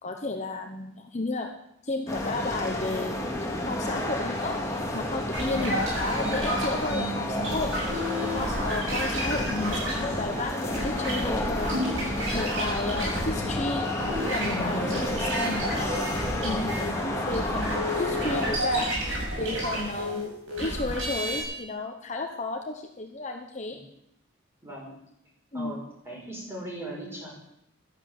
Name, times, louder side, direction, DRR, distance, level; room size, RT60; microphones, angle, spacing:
voice 1, 0.0-1.5 1.8-3.2 3.7-13.9 14.2-18.9 19.4-20.3 20.6-23.8 25.5-25.7, left 2 dB, 35° left, 4 dB, 1.0 m, -33 dB
sound 1, 2.1-18.6, left 1 dB, 15° left, 2.4 m, -31 dB
sound 2, 5.3-13.6 13.9-21.4, equal, 80° right, 7.3 m, -31 dB
voice 2, 12.5-12.8 14.7-15.1 16.8-17.2 24.6-24.9 25.5-27.3, right 1 dB, 10° right, -3 dB, 5.5 m, -40 dB
12.5 x 10.5 x 7.8 m, 0.79 s
head